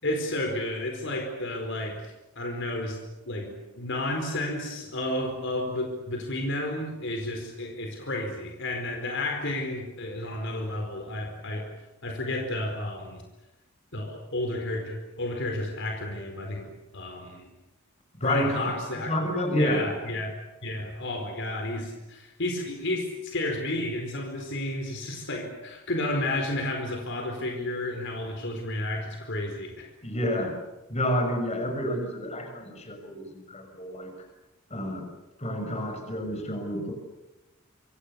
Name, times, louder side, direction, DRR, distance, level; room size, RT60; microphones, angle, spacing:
voice 1, 0.0-3.0 3.3-11.7 12.0-13.2 13.9-17.5 18.2-19.1 19.5-20.3 20.6-29.9, left 1 dB, 60° left, 3 dB, 4.6 m, -32 dB
voice 2, 18.1-18.7 19.1-19.8 30.0-30.5 30.9-34.1 34.7-35.0 35.4-36.9, equal, 30° left, 4 dB, 6.4 m, -29 dB
27.5 x 25.5 x 7.0 m, 1.0 s
head